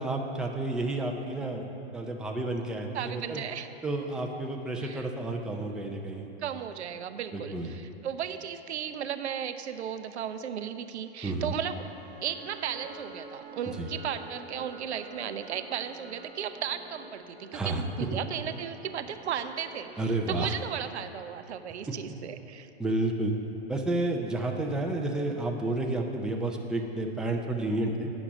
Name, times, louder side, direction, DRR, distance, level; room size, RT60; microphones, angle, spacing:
voice 1, 0.0-1.6 1.9-3.4 3.8-6.3 7.3-7.8 11.2-11.5 13.7-13.9 17.5-17.8 20.0-20.5 22.8-23.3 23.7-28.1, right 2 dB, ahead, 1 dB, 0.3 m, -31 dB
voice 2, 2.9-3.7 4.8-5.0 6.4-11.9 12.2-22.7, right 9 dB, 85° right, 10 dB, 0.5 m, -35 dB
sound 1, 11.8-22.0, right 2 dB, 25° right, 1.0 m, -48 dB
9.8 x 6.1 x 5.0 m, 2.9 s
hypercardioid pair, 115°, 33 cm